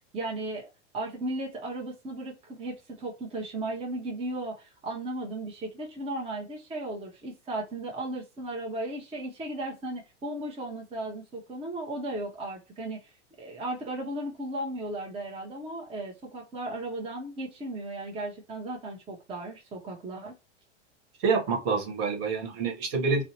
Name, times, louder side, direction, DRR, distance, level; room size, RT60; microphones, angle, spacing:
voice 1, 0.1-0.7 0.9-13.1 13.4-20.3, right 1 dB, 15° right, 0.6 m, -35 dB
voice 2, 21.2-23.2, right 4 dB, 55° right, 1.1 m, -27 dB
2.6 x 2.1 x 2.7 m
hypercardioid pair, 100°, 36 cm